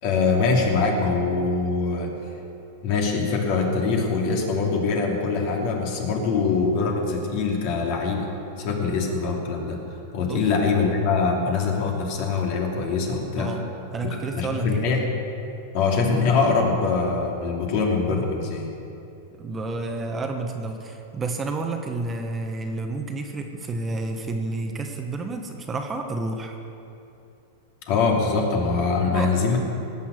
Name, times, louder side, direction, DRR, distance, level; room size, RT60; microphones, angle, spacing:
voice 1, 0.0-2.1 2.8-8.3 8.6-9.8 10.1-13.5 14.0-15.0 15.7-18.7 27.9-29.6, left 4 dB, 55° left, 0 dB, 2.8 m, -23 dB
voice 2, 13.9-15.1 19.4-26.6 29.1-29.3, right 3 dB, 20° right, 4 dB, 1.2 m, -30 dB
18.0 x 7.0 x 8.2 m, 2.8 s
hypercardioid pair, 125°, 0 cm